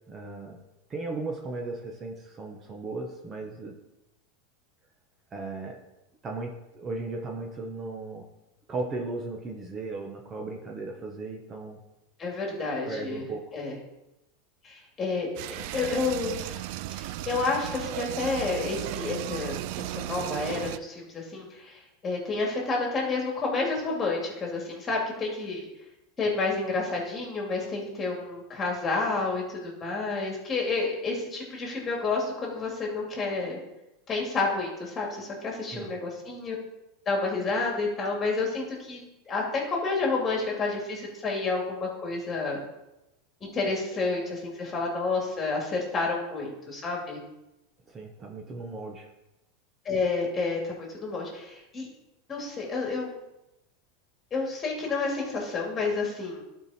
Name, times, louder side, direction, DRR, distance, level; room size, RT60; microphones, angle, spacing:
voice 1, 0.1-0.6 0.9-3.8 5.3-5.8 6.2-8.3 8.7-11.8 12.9-13.4 15.6-15.7 35.7-35.9 47.9-49.1, right 3 dB, 25° right, 1 dB, 1.1 m, -36 dB
voice 2, 12.2-13.3 13.5-13.8 14.6-16.7 16.9-25.7 26.2-33.6 34.1-36.6 37.1-39.0 39.3-42.6 43.4-47.2 49.8-51.9 52.3-53.1 54.3-56.4, left 3 dB, 25° left, -1 dB, 2.5 m, -30 dB
sound 1, 15.4-20.8, right 14 dB, 60° right, 0.3 m, -35 dB
11.5 x 4.7 x 4.3 m, 0.94 s
supercardioid pair, 130°, 0 cm